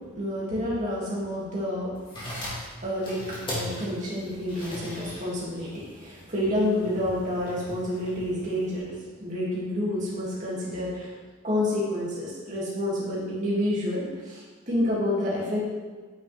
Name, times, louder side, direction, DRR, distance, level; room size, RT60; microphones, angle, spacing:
voice 1, 0.2-1.9 2.4-3.2 3.5-11.1 11.4-15.6, left 1 dB, 35° right, -7 dB, 2.4 m, -29 dB
Insert CD into Laptop, 2.0-8.8, left 1 dB, 25° left, 2.2 m, -39 dB
9.2 x 5.8 x 3.4 m, 1.4 s
head